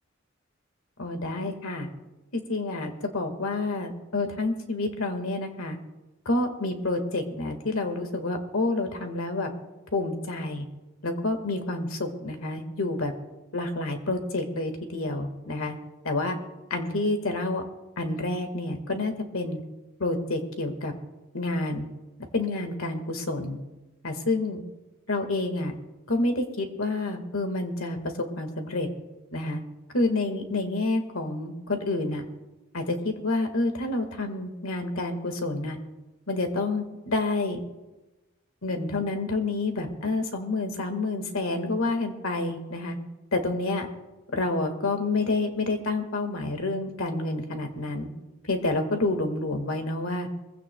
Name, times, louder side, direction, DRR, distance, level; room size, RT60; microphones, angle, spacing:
voice 1, 1.0-1.9 2.3-5.8 6.3-9.5 9.9-10.7 11.0-13.1 13.5-15.8 16.1-16.4 16.7-17.6 18.0-19.6 20.0-20.9 21.3-21.9 22.3-23.6 24.0-24.6 25.1-25.7 26.1-28.0 28.4-28.9 29.3-29.6 29.9-32.2 32.7-35.8 36.3-37.6 38.6-43.0 43.3-43.9 44.3-48.1 48.5-50.3, left 2 dB, 90° left, 6 dB, 1.7 m, -28 dB
22.0 x 15.5 x 2.3 m, 1.1 s
head